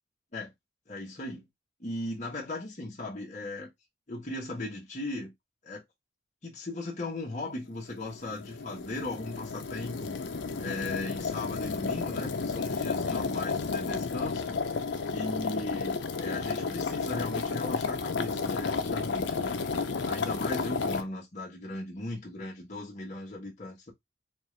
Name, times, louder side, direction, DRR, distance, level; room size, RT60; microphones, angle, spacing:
voice 1, 0.9-1.4 1.8-3.7 4.1-5.3 5.6-5.8 6.4-10.3 10.6-14.8 15.1-23.9, left 2 dB, 40° left, 1.2 m, -38 dB
sound 1, 7.9-21.0, left 4 dB, 70° left, 0.6 m, -32 dB
4.4 x 2.5 x 3.2 m
head